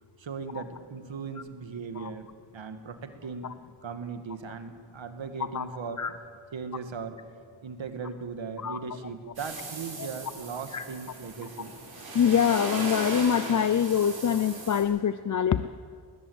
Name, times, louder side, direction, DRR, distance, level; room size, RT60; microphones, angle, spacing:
voice 1, 0.2-2.3 2.5-3.5 3.8-6.0 6.5-7.2 7.6-11.7, right 5 dB, 65° right, 8 dB, 1.7 m, -38 dB
sound 1, 9.3-14.8, right 2 dB, 45° right, 5.6 m, -38 dB
voice 2, 12.1-15.7, left 8 dB, 40° left, 12 dB, 0.4 m, -24 dB
20.0 x 18.5 x 7.9 m, 2.1 s
wide cardioid pair, 165°, 49 cm